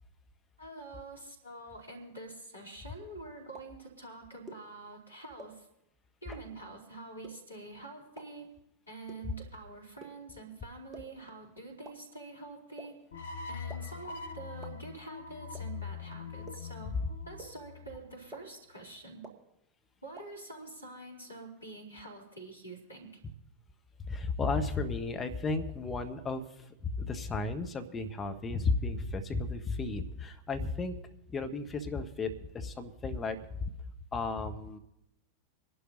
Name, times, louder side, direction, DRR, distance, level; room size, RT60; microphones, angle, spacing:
voice 1, 0.6-5.7 6.2-8.5 8.9-13.0 13.5-17.0 17.2-19.3 20.0-23.2, right 2 dB, 85° left, 0 dB, 3.1 m, -46 dB
sound 1, 3.5-3.6 4.5-4.6 5.4-5.5 6.3-6.4 7.2-7.3 8.2-8.3 9.1-9.2 10.0-10.1 10.9-11.0 11.8-11.9 12.8-12.9 13.7-13.8 14.6-14.7 15.5-15.6 16.5-16.6 17.4-17.5 18.3-18.4 19.2-19.3 20.2-20.3, right 2 dB, 20° right, 2.0 m, -45 dB
sound 2, 13.1-18.3, left 5 dB, 60° left, 0.9 m, -43 dB
voice 2, 24.0-26.7 27.0-30.9 31.3-33.7 34.1-34.8, left 3 dB, 20° left, 7 dB, 1.2 m, -34 dB
26.5 x 11.5 x 2.7 m, 0.83 s
figure-of-eight pair, 90°, 0 cm